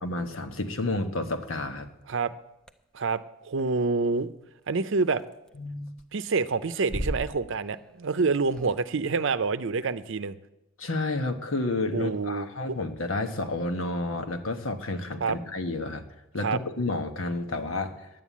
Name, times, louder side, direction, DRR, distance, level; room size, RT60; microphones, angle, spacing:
voice 1, 0.0-1.9 5.6-5.9 10.8-16.0 16.3-18.1, left 2 dB, 80° left, 6 dB, 1.3 m, -30 dB
sound 1, 1.8-1.9 2.7-2.8 3.5-3.6 5.1-5.6 5.9-6.3 6.6-7.9 8.2-8.3 8.5-8.8, equal, 5° left, 0.6 m, -35 dB
voice 2, 2.9-4.3 4.7-5.2 6.1-10.3 11.9-12.5 15.2-15.4 16.4-16.6, right 4 dB, 65° right, 13 dB, 0.6 m, -27 dB
10.5 x 9.2 x 8.4 m, 0.91 s
head